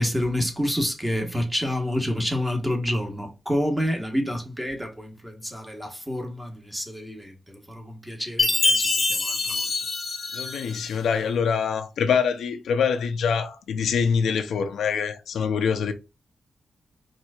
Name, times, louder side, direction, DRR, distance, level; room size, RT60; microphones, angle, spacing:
voice 1, 0.0-9.7, equal, 10° right, 1.1 m, -28 dB
Chime, 8.4-10.9, left 2 dB, 40° left, 0.8 m, -24 dB
voice 2, 10.3-15.9, left 6 dB, 90° left, 0.5 m, -24 dB
4.3 x 2.6 x 2.3 m
cardioid pair, 90°, 0 cm